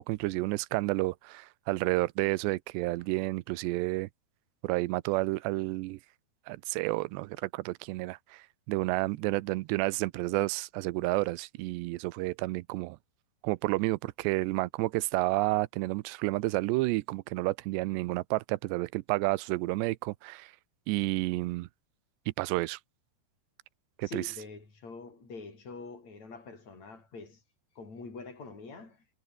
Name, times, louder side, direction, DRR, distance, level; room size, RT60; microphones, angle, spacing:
voice 1, 0.0-4.1 4.6-6.0 6.5-13.0 13.4-20.5 20.9-21.7 22.4-22.8 24.0-24.2, right 21 dB, 90° right, 2.9 m, -30 dB
voice 2, 24.0-27.4 27.8-29.0, left 4 dB, 40° left, 9.0 m, -45 dB
omnidirectional pair, 4.8 m